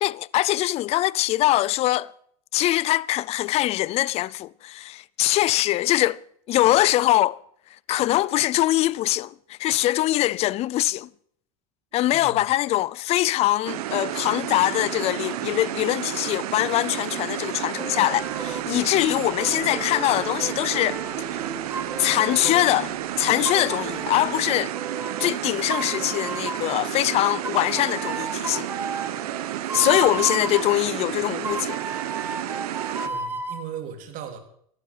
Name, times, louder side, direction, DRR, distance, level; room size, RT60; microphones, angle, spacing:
voice 1, 0.0-2.1 2.5-6.2 6.5-7.4 7.9-11.1 11.9-21.0 21.3-21.4 22.0-24.7 25.2-28.7 29.7-31.8, left 15 dB, 35° left, 0.5 m, -23 dB
sound 1, 13.7-33.1, right 13 dB, 85° right, 1.5 m, -31 dB
sound 2, 17.8-18.8 19.4-22.8 23.4-25.3 25.7-26.8 27.4-30.8 31.4-33.6, right 4 dB, 10° right, 1.9 m, -34 dB
sound 3, 18.0-24.6, left 2 dB, 60° left, 3.9 m, -49 dB
voice 2, 33.0-34.4, right 8 dB, 45° right, 3.6 m, -37 dB
15.0 x 12.0 x 6.1 m
supercardioid pair, 135°, 19 cm